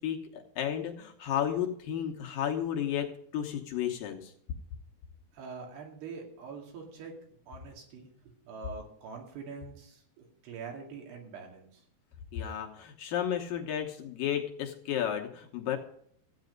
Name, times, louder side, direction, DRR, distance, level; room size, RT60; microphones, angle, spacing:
voice 1, 0.0-4.3 12.3-15.8, left 10 dB, 70° left, 2 dB, 2.5 m, -33 dB
voice 2, 5.3-7.1 7.5-8.1 8.5-11.7, right 5 dB, 85° right, 1 dB, 4.4 m, -44 dB
13.5 x 8.9 x 5.2 m, 0.65 s
omnidirectional pair, 4.6 m